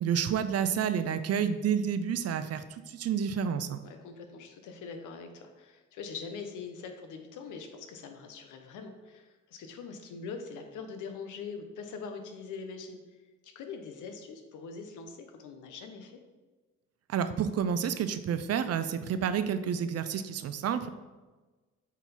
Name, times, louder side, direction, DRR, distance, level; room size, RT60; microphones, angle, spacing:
voice 1, 0.0-3.8 17.1-20.9, right 8 dB, 55° right, 11 dB, 0.6 m, -30 dB
voice 2, 3.8-13.0 13.4-16.2, left 5 dB, 80° left, 6 dB, 0.9 m, -43 dB
7.1 x 3.9 x 4.3 m, 1.2 s
cardioid pair, 90°, 30 cm